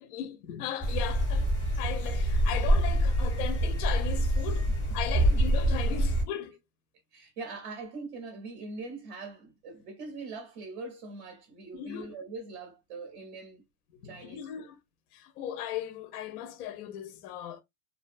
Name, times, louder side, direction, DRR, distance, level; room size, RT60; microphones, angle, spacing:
voice 1, 0.0-4.7 4.9-6.6 11.7-12.1 13.9-14.8 15.1-17.6, left 10 dB, 65° left, 0.5 m, -37 dB
sound 1, 0.8-6.2, right 1 dB, 10° left, 0.6 m, -26 dB
voice 2, 7.1-13.6 14.0-14.7, right 3 dB, 35° right, 0.5 m, -42 dB
2.5 x 2.2 x 2.4 m
supercardioid pair, 165°, 50 cm